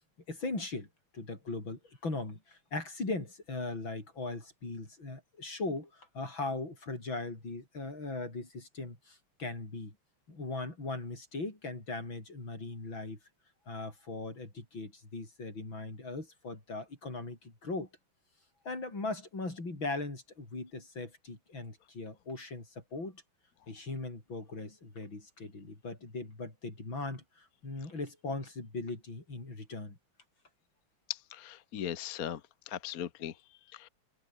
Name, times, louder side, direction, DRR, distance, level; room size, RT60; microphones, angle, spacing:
voice 1, 0.3-0.9 1.1-10.0 10.3-13.2 13.7-17.9 18.7-23.2 23.7-30.0, left 3 dB, 85° left, 7.3 m, -39 dB
voice 2, 31.1-33.9, left 10 dB, 55° left, 1.4 m, -39 dB
omnidirectional pair, 2.1 m